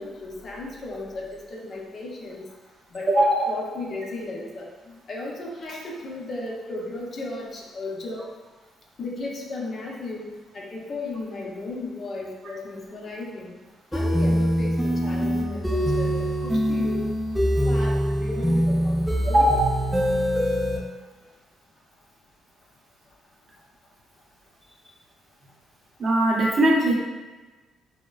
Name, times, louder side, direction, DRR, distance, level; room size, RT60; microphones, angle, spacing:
voice 1, 0.0-2.5 2.9-3.1 3.5-8.3 9.0-13.5 13.9-17.1 17.6-19.4, left 2 dB, 50° left, -2 dB, 0.6 m, -35 dB
voice 2, 3.1-3.4 19.2-19.6 26.0-26.9, right 1 dB, 50° right, -3 dB, 0.6 m, -20 dB
sound 1, 13.9-20.8, equal, ahead, 0.5 m, -23 dB
3.7 x 2.1 x 2.3 m, 1.2 s
cardioid pair, 90°, 0 cm